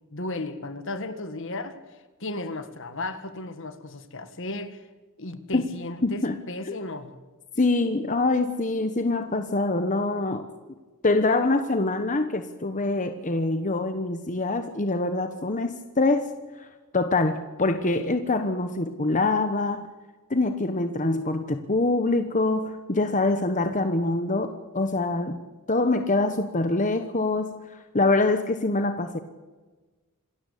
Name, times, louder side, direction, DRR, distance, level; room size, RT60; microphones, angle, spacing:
voice 1, 0.1-4.9 5.2-7.1, left 2 dB, 60° left, 1.8 m, -35 dB
voice 2, 6.0-6.4 6.7-6.8 7.6-10.5 11.0-16.3 16.9-19.9 20.3-25.4 25.7-27.5 27.9-29.2, left 2 dB, 35° left, 1.2 m, -24 dB
27.0 x 13.5 x 8.4 m
head